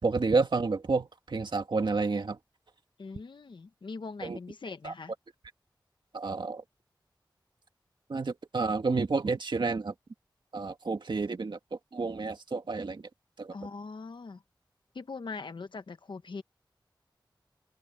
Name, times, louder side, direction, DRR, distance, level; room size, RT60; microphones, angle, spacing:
voice 1, 0.0-2.4 4.2-4.4 4.8-4.9 6.1-6.6 8.1-9.9 10.5-13.1 13.4-13.5, right 4 dB, 70° right, 2.2 m, -30 dB
voice 2, 3.0-5.1 13.5-14.4 14.9-16.4, left 4 dB, 75° left, 1.3 m, -41 dB
open air
wide cardioid pair, 60°, 8 cm